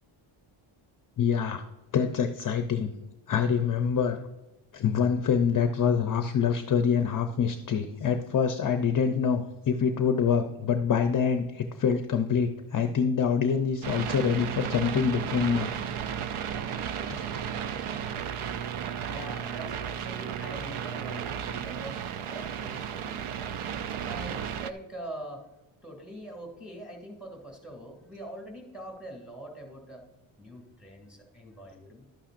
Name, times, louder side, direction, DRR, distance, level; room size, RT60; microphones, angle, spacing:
voice 1, 1.2-1.6 1.9-2.9 3.3-4.2 4.7-15.7 16.9-17.2, left 7 dB, 40° left, 7 dB, 0.6 m, -26 dB
sound 1, 13.8-24.7, right 8 dB, 75° right, 0.6 m, -34 dB
voice 2, 19.0-23.4 24.0-25.5 25.8-30.1 30.4-32.0, right 1 dB, ahead, 0 dB, 2.4 m, -43 dB
12.0 x 8.7 x 2.5 m, 1.0 s
wide cardioid pair, 140°, 50 cm